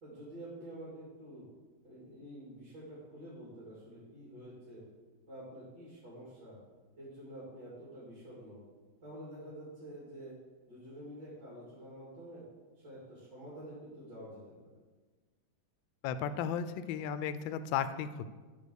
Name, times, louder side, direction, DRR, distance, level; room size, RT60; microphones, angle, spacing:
voice 1, 0.0-1.5 1.8-4.8 5.3-6.6 7.0-8.6 9.0-10.3 10.7-12.4 12.8-14.8, right 1 dB, 60° right, -8 dB, 3.2 m, -48 dB
voice 2, 16.0-18.3, left 8 dB, 75° left, 12 dB, 1.2 m, -35 dB
11.5 x 4.0 x 6.4 m, 1.3 s
omnidirectional pair, 2.2 m